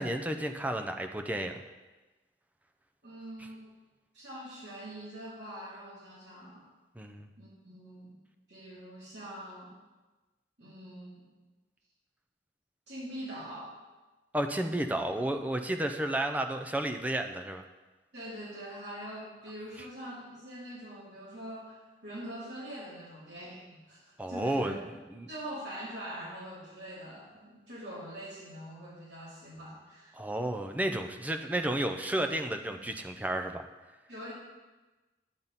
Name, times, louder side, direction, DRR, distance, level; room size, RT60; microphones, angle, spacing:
voice 1, 0.0-1.6 7.0-7.3 14.3-17.6 24.2-25.3 30.1-33.6, right 1 dB, 10° right, 5 dB, 0.5 m, -32 dB
voice 2, 3.0-3.7 4.1-6.6 7.4-8.1 8.5-9.7 10.6-11.3 12.9-13.7 18.1-24.7 25.3-30.2 34.1-34.3, right 1 dB, 75° right, -7 dB, 3.2 m, -43 dB
10.5 x 7.2 x 4.1 m, 1.2 s
head